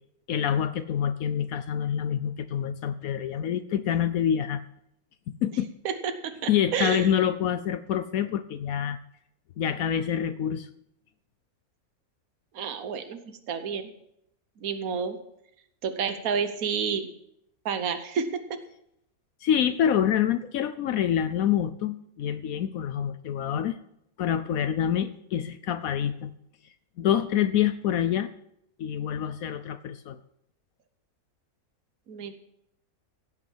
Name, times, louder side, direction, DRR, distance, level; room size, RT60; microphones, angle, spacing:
voice 1, 0.3-4.6 5.4-5.7 6.5-9.0 9.6-10.7 19.4-23.8 24.2-26.3 27.0-28.3 28.8-30.2, left 9 dB, 75° left, 12 dB, 1.1 m, -26 dB
voice 2, 5.8-7.1 12.5-13.9 14.6-15.2 15.8-17.1 17.6-18.4 32.1-32.3, right 6 dB, 75° right, 9 dB, 1.5 m, -30 dB
16.5 x 6.2 x 7.2 m, 0.75 s
omnidirectional pair, 1.5 m